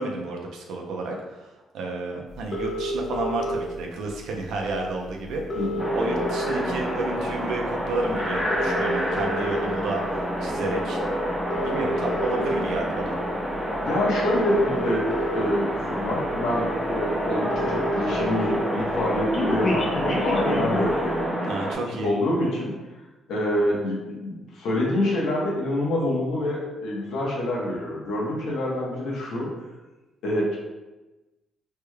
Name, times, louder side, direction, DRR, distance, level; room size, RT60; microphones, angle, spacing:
voice 1, 0.0-1.5 1.7-5.4 5.9-11.0 11.6-13.2 21.5-22.1, right 2 dB, 80° right, 1 dB, 0.6 m, -31 dB
sound 1, 2.5-3.5 4.7-4.8 5.1-5.2 5.3-6.8 7.3-7.5 8.3-9.5 10.2-10.4 11.4-12.5 13.7-13.8 14.3-15.5 16.2-16.3 16.6-16.7 16.9-17.0 17.2-18.5 18.8-21.0, left 1 dB, 40° left, 0.7 m, -29 dB
sound 2, 5.8-21.7, equal, 5° right, 0.9 m, -28 dB
voice 2, 13.8-15.0 15.3-21.5 21.9-22.7 23.3-29.5 30.2-30.6, left 1 dB, 80° left, -4 dB, 1.0 m, -26 dB
3.3 x 3.2 x 2.2 m, 1.1 s
cardioid pair, 90°, 0 cm